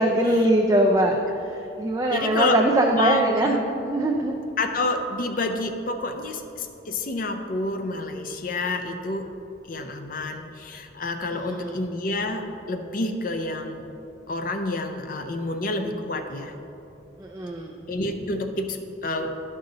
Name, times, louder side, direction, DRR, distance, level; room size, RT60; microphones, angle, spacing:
voice 1, 0.0-4.4 11.3-11.8 17.2-17.7, right 1 dB, 20° right, 1 dB, 0.4 m, -22 dB
voice 2, 2.1-2.6 2.9-3.6 4.6-9.3 9.7-13.8 14.3-16.5 17.9-19.3, left 2 dB, 45° left, 6 dB, 0.5 m, -28 dB
11.5 x 5.5 x 3.8 m, 2.9 s
head